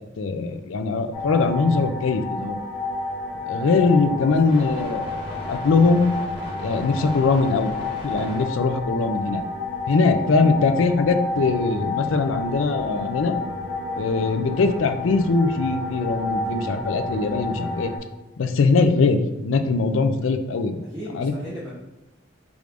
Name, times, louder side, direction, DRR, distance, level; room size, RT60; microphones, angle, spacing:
voice 1, 0.0-2.6 3.5-5.0 5.5-6.1 6.6-7.7 8.0-9.4 9.9-13.4 14.0-17.9 18.4-20.8 21.1-21.3, left 4 dB, 75° left, 8 dB, 0.4 m, -21 dB
sound 1, 1.1-18.0, left 2 dB, 30° left, 1.2 m, -30 dB
voice 2, 3.5-4.7 10.3-10.5 20.9-21.7, equal, 20° right, -9 dB, 0.7 m, -37 dB
4.9 x 2.5 x 3.3 m, 0.95 s
head